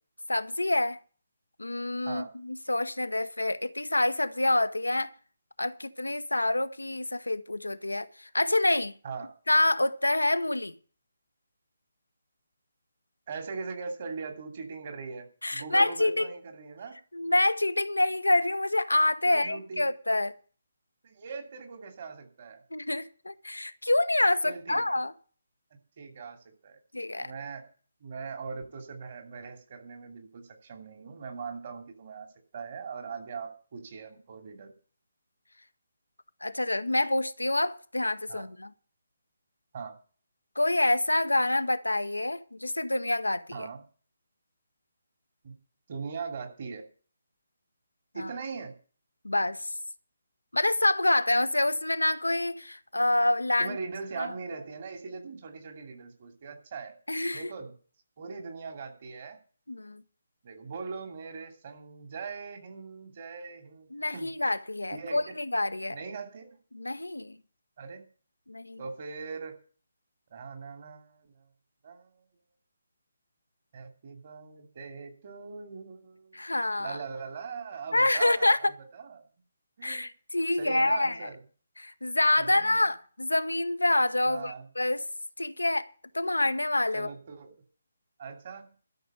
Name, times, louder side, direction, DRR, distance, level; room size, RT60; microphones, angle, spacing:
voice 1, 0.3-1.0 1.6-5.1 5.6-8.9 9.5-10.7 15.4-16.3 17.1-20.3 22.7-25.1 26.9-27.3 36.4-38.7 40.6-43.7 48.2-48.3 49.2-49.6 50.5-53.8 54.2-54.3 57.1-57.4 59.7-60.0 63.9-66.0 66.7-67.4 68.5-68.8 76.3-77.0 77.9-78.6 79.8-81.3 81.8-85.1 85.4-87.1, left 2 dB, 75° left, 0.9 m, -27 dB
voice 2, 9.0-9.4 13.3-17.0 19.3-19.9 21.0-22.6 24.4-25.0 26.0-27.6 28.0-32.3 32.5-34.7 38.3-38.5 39.7-40.0 43.5-43.8 45.4-45.6 45.9-46.8 48.1-48.8 53.6-57.0 57.3-57.7 58.2-59.4 60.4-64.3 64.9-65.4 65.9-66.6 67.8-68.1 68.8-69.6 70.3-71.5 71.8-72.2 73.7-76.4 76.8-79.2 79.8-80.1 80.6-81.4 82.4-82.8 84.3-84.7 86.9-87.6 88.2-88.8, right 5 dB, 40° right, 2.7 m, -40 dB
12.5 x 6.3 x 9.3 m
figure-of-eight pair, 145°, 0 cm